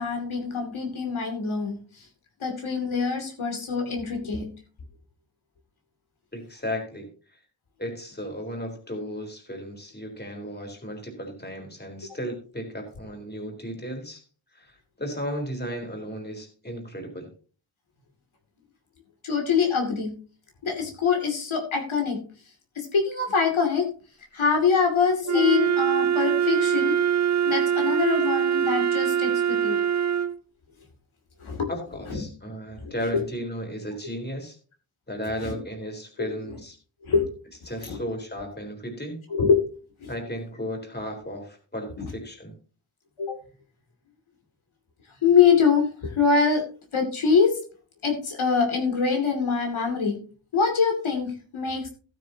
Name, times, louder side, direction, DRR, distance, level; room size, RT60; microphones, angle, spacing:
voice 1, 0.0-2.0 2.4-4.5 19.2-20.1 20.6-22.2 22.8-23.9 24.3-27.0 27.5-29.8 31.4-31.7 32.8-33.2 35.4-35.6 36.2-36.3 37.0-37.3 37.8-38.0 39.3-39.6 40.0-40.1 42.0-42.1 43.2-43.4 45.2-46.6 46.9-47.6 48.0-50.2 50.5-51.9, left 6 dB, 75° left, 2 dB, 2.6 m, -24 dB
voice 2, 6.3-7.4 7.8-14.2 14.5-17.3 31.7-34.6 35.1-36.8 37.7-39.2 40.1-42.5, equal, 20° left, 2 dB, 3.7 m, -35 dB
Wind instrument woodwind instrument, 25.2-30.4, right 8 dB, 35° right, 0.6 m, -23 dB
15.5 x 9.2 x 2.8 m, 0.38 s
wide cardioid pair, 115°, 48 cm